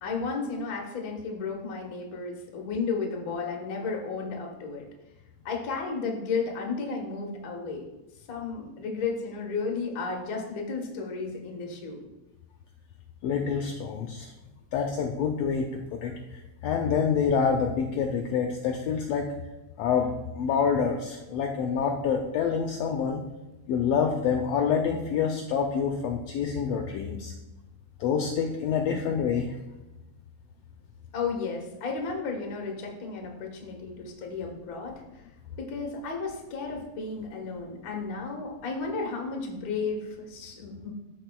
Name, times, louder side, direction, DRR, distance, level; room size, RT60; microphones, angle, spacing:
voice 1, 0.0-4.8 5.4-7.8 8.3-12.0 31.1-34.9 35.6-40.9, left 4 dB, 60° left, 0 dB, 0.9 m, -33 dB
voice 2, 13.2-14.3 14.7-19.3 19.8-23.2 23.7-27.3 28.0-29.6, left 6 dB, 80° left, 3 dB, 1.5 m, -27 dB
13.0 x 4.6 x 2.3 m, 0.99 s
omnidirectional pair, 3.4 m